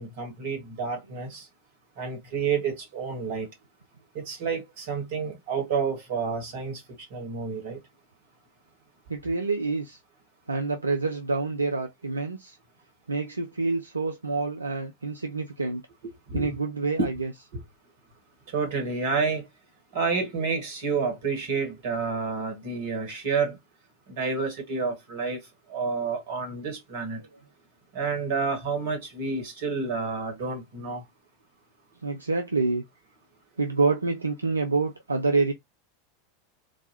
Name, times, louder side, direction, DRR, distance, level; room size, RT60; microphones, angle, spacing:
voice 1, 0.0-1.5 2.0-3.5 4.1-6.8 7.1-7.8 16.3-16.5 17.0-17.1 17.5-17.6 18.5-19.5 19.9-23.6 24.1-25.4 25.7-27.2 27.9-31.0, right 5 dB, 55° right, 1.6 m, -29 dB
voice 2, 9.1-10.0 10.5-12.6 13.1-15.8 16.3-17.3 32.0-32.8 33.6-35.5, right 3 dB, 80° right, 0.4 m, -27 dB
3.8 x 2.2 x 3.1 m
figure-of-eight pair, 85°, 0 cm